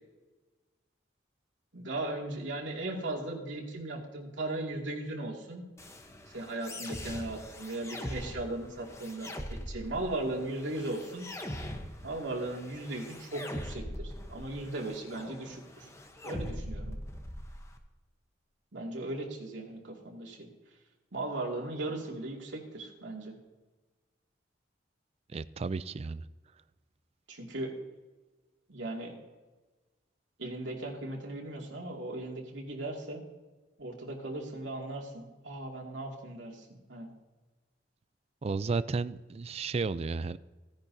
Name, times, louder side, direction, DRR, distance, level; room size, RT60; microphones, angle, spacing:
voice 1, 1.7-5.6 6.3-11.3 12.0-15.9 16.2-17.0 18.7-20.5 21.1-23.4 27.3-27.7 28.7-29.1 30.4-33.2 33.8-37.1, right 2 dB, 85° right, -1 dB, 2.4 m, -37 dB
sound 1, 5.8-17.8, left 1 dB, 15° left, 0.9 m, -42 dB
voice 2, 25.3-26.3 38.4-40.4, right 4 dB, 35° right, 16 dB, 0.3 m, -33 dB
16.0 x 10.5 x 2.7 m, 1.2 s
head